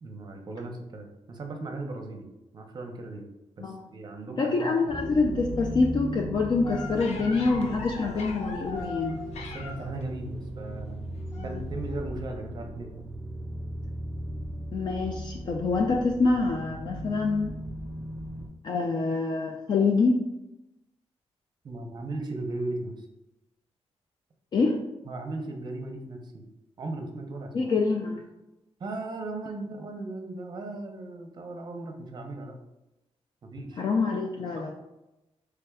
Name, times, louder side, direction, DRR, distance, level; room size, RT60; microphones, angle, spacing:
voice 1, 0.0-3.3 3.6-4.7 7.0-7.1 9.5-11.0 11.4-12.9 21.6-23.1 25.1-26.4 26.8-27.7 28.8-32.6 33.4-33.8 34.6-34.7, right 2 dB, 40° right, 3 dB, 0.6 m, -37 dB
voice 2, 4.4-9.2 11.3-11.6 14.7-17.5 18.6-20.2 24.5-24.8 27.5-28.2 33.8-34.7, left 4 dB, 45° left, 1 dB, 0.3 m, -26 dB
sound 1, 4.9-18.5, right 1 dB, 5° left, 1.1 m, -37 dB
sound 2, 6.6-10.0 11.3-11.6 11.9-12.0, left 3 dB, 90° left, 0.6 m, -39 dB
4.7 x 3.4 x 2.3 m, 0.96 s
wide cardioid pair, 150°, 11 cm